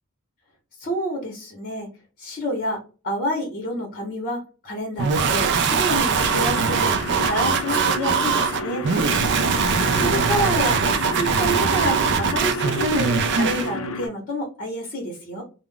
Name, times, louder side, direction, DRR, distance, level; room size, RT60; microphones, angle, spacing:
voice 1, 0.8-1.9 2.2-6.9 7.2-8.9 9.7-15.4, equal, 40° left, -1 dB, 0.9 m, -28 dB
sound 1, 5.0-13.7, right 5 dB, 55° right, 0.4 m, -21 dB
sound 2, 6.2-14.1, left 2 dB, 65° left, 0.5 m, -31 dB
2.4 x 2.0 x 3.6 m, 0.34 s
head